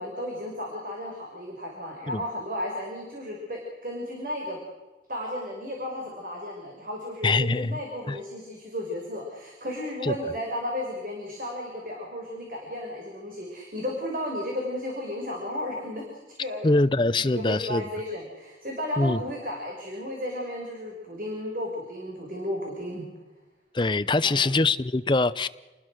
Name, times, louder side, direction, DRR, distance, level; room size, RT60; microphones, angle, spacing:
voice 1, 0.0-4.6 5.1-16.0 16.4-16.7 17.1-23.1 24.2-24.5, left 1 dB, 50° right, 0 dB, 5.6 m, -34 dB
voice 2, 7.2-7.8 8.1-8.2 10.0-10.1 16.6-17.8 19.0-19.2 23.7-25.5, left 2 dB, 25° left, 14 dB, 0.7 m, -23 dB
28.5 x 20.0 x 6.5 m, 1.2 s
head